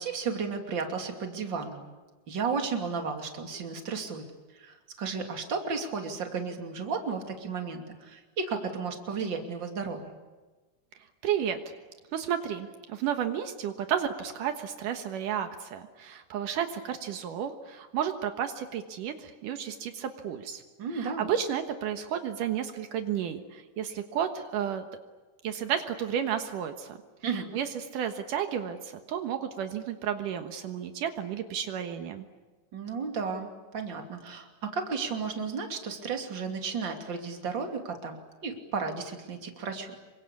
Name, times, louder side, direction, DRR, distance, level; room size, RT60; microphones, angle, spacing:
voice 1, 0.0-1.9 2.3-4.2 4.5-10.0 20.8-21.3 27.2-27.5 32.7-39.9, right 5 dB, 35° right, 4 dB, 3.2 m, -33 dB
voice 2, 11.2-11.6 12.1-20.6 20.9-24.9 25.4-27.0 27.3-32.3, right 9 dB, 80° right, 7 dB, 2.9 m, -32 dB
27.5 x 24.0 x 8.5 m, 1.3 s
omnidirectional pair, 3.8 m